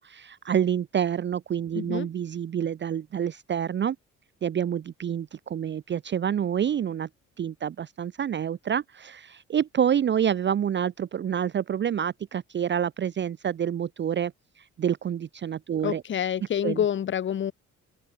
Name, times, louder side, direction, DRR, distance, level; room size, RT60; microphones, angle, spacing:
voice 1, 0.0-4.0 4.4-7.1 7.4-14.3 14.8-16.0 16.6-16.8, right 9 dB, 40° right, 0.6 m, -27 dB
voice 2, 1.7-2.1 15.8-17.5, left 9 dB, 40° left, 0.7 m, -27 dB
open air
cardioid pair, 90°, 30 cm